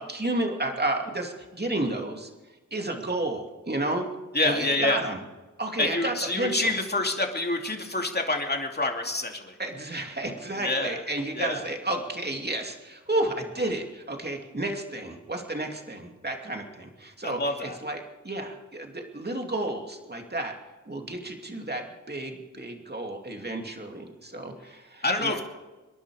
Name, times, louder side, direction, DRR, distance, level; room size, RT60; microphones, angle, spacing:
voice 1, 0.0-2.3 2.7-4.1 4.4-5.2 5.6-6.7 9.6-20.5 20.9-25.4, right 1 dB, 30° right, 2 dB, 2.7 m, -31 dB
voice 2, 4.3-5.0 5.8-9.5 10.6-11.0 11.3-11.6 17.2-17.8 25.0-25.4, left 2 dB, 30° left, 2 dB, 2.7 m, -27 dB
26.5 x 11.0 x 4.9 m, 1.2 s
wide cardioid pair, 55°, 31 cm